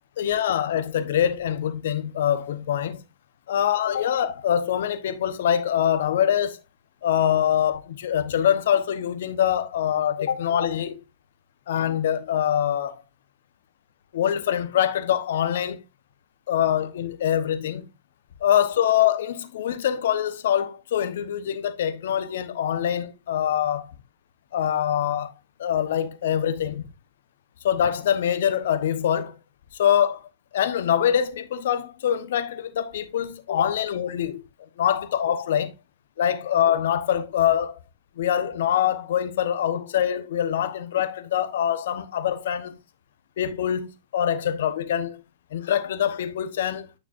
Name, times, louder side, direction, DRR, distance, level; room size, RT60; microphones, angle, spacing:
voice 1, 0.2-3.0 3.5-6.6 7.0-11.0 11.7-13.0 14.1-15.8 16.5-17.9 18.4-23.9 24.5-25.3 25.6-26.8 27.6-29.3 29.7-30.3 30.5-34.4 34.8-35.7 36.2-37.8 38.2-42.8 43.4-45.2 45.5-46.9, left 9 dB, 65° left, 1.2 m, -24 dB
9.4 x 6.0 x 2.6 m
hypercardioid pair, 105°, 0 cm